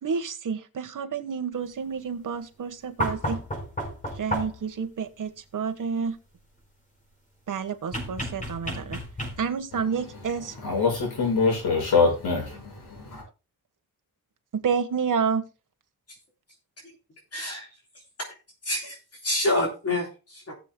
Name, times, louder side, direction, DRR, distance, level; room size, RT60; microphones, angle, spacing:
voice 1, 0.0-3.4 4.2-6.2 7.5-9.0 9.4-10.5 14.5-15.4, right 6 dB, 55° right, 1.4 m, -29 dB
sound 1, 3.0-4.7 7.9-9.7 11.2-11.3, equal, 20° left, 4.9 m, -32 dB
voice 2, 9.7-13.3, left 4 dB, 90° left, 6.3 m, -25 dB
voice 3, 17.3-17.7 18.6-19.0 19.2-20.5, left 1 dB, 40° left, 3.4 m, -27 dB
18.0 x 7.5 x 2.2 m
wide cardioid pair, 155°, 37 cm